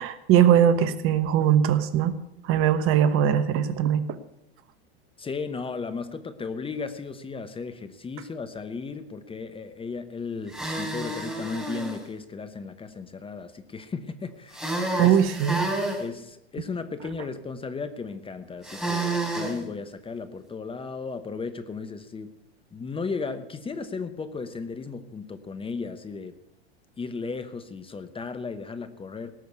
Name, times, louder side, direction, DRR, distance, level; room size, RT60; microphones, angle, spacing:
voice 1, 0.0-2.2 2.4-4.0 15.0-15.7, right 9 dB, 40° right, 13 dB, 1.1 m, -21 dB
voice 2, 5.2-15.2 16.0-22.3 22.7-26.3 27.0-29.3, left 4 dB, 15° left, 10 dB, 1.0 m, -35 dB
sound 1, 10.5-12.0 14.5-16.0 18.6-19.6, right 2 dB, ahead, 4.0 m, -29 dB
18.5 x 6.4 x 8.2 m, 0.85 s
hypercardioid pair, 95°, 33 cm